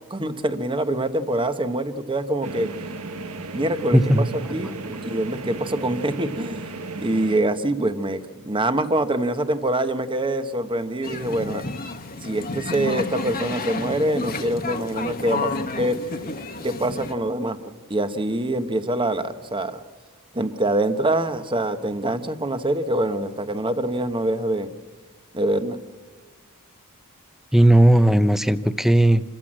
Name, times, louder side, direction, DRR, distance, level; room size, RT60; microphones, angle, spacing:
voice 1, 0.1-2.7 3.5-4.0 4.5-6.6 7.0-11.7 12.2-16.0 16.6-17.6 17.9-19.8 20.3-24.7 25.3-25.8, right 1 dB, 20° right, 10 dB, 1.1 m, -25 dB
sound 1, 2.4-7.4, right 3 dB, 70° right, 1.4 m, -34 dB
voice 2, 3.9-4.3 27.5-29.2, right 1 dB, ahead, 12 dB, 0.7 m, -16 dB
sound 2, 11.0-17.1, left 3 dB, 40° left, 1.4 m, -31 dB
27.0 x 15.0 x 7.6 m, 1.4 s
head